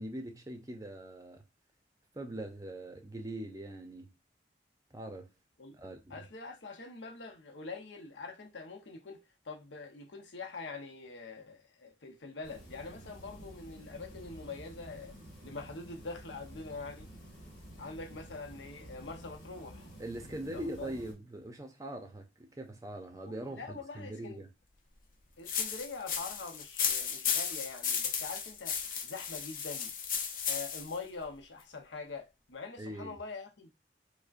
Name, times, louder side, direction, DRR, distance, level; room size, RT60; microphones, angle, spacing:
voice 1, 0.0-1.5 2.1-4.2 4.9-5.3 5.7-6.2 20.0-24.5 32.8-33.2, right 1 dB, 20° right, 0.5 m, -42 dB
voice 2, 6.1-9.2 9.4-15.2 15.4-17.1 17.8-19.9 20.5-20.9 23.2-24.4 25.4-28.8 29.0-29.9 30.4-33.7, left 4 dB, 90° left, 0.8 m, -44 dB
sound 1, 12.4-21.1, right 1 dB, 70° left, 2.4 m, -51 dB
sound 2, 25.5-31.0, left 7 dB, 50° left, 0.6 m, -34 dB
4.9 x 2.1 x 2.5 m
head